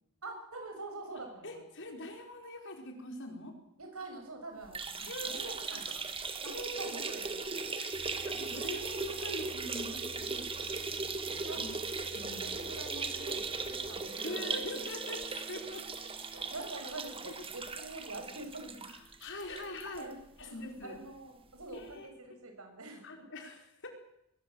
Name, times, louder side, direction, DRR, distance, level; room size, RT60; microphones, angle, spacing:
voice 1, 0.2-1.6 3.8-6.0 6.4-7.7 11.5-11.6 12.4-14.4 16.3-18.9 19.4-23.3, right 2 dB, 75° right, 5 dB, 6.6 m, -46 dB
voice 2, 1.4-3.5 5.1-5.5 6.5-6.9 7.8-11.7 12.1-12.5 14.2-15.9 17.3-17.4 19.2-20.1 20.4-21.0 21.7-22.1 23.0-23.9, left 1 dB, 60° left, 3 dB, 5.1 m, -43 dB
sound 1, 4.6-20.0 20.4-20.5 20.8-20.9 21.9-22.0, right 4 dB, 25° right, 1.8 m, -38 dB
Truck, 7.9-14.0, right 1 dB, 50° right, 7.2 m, -54 dB
Guitar, 14.2-19.7, equal, 5° left, 1.7 m, -54 dB
22.0 x 20.5 x 8.0 m, 0.77 s
head